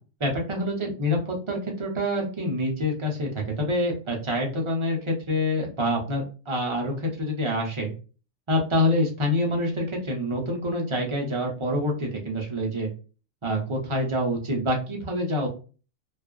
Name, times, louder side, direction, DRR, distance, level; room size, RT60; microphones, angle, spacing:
voice 1, 0.2-7.9 8.5-12.9 13.4-15.5, left 1 dB, 40° right, 0 dB, 0.4 m, -26 dB
2.4 x 2.3 x 2.2 m, 0.36 s
omnidirectional pair, 1.3 m